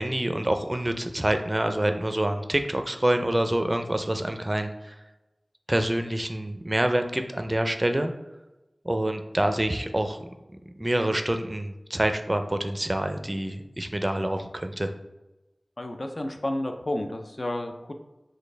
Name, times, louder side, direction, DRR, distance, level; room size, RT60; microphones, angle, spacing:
voice 1, 0.0-5.0 5.7-8.1 8.8-10.2 10.8-14.9, right 1 dB, 25° right, 7 dB, 0.5 m, -26 dB
voice 2, 15.8-17.9, left 1 dB, 45° left, 5 dB, 0.5 m, -31 dB
6.2 x 2.6 x 3.3 m, 1.0 s
wide cardioid pair, 60°, 0 cm